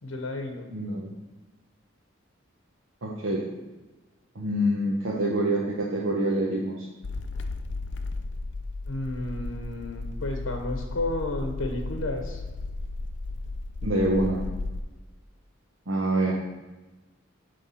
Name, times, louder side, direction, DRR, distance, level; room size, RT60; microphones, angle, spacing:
voice 1, 0.0-0.7 8.9-12.4, left 2 dB, 75° left, 4 dB, 0.8 m, -32 dB
voice 2, 0.7-1.1 3.0-3.5 4.3-6.9 13.8-14.4 15.9-16.3, right 1 dB, 80° right, -3 dB, 0.9 m, -26 dB
sound 1, 7.0-14.8, left 2 dB, 60° left, 0.5 m, -34 dB
9.4 x 3.4 x 5.5 m, 1.2 s
head